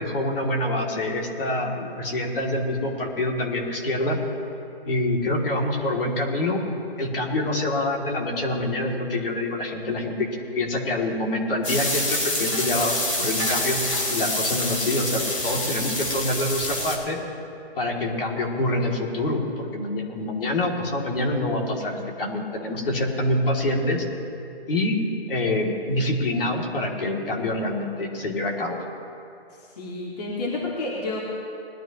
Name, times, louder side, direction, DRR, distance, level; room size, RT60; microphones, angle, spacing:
voice 1, 0.0-1.7 2.0-4.2 4.8-6.6 7.0-10.3 10.5-13.8 14.1-17.2 17.8-24.0 24.7-25.0 25.3-28.8, left 1 dB, 60° left, 0 dB, 2.7 m, -26 dB
sound 1, 11.6-17.0, left 1 dB, 85° left, 3.6 m, -26 dB
voice 2, 29.8-31.2, left 2 dB, 40° left, -4 dB, 2.0 m, -30 dB
20.5 x 12.0 x 3.0 m, 2.6 s
hypercardioid pair, 155°, 32 cm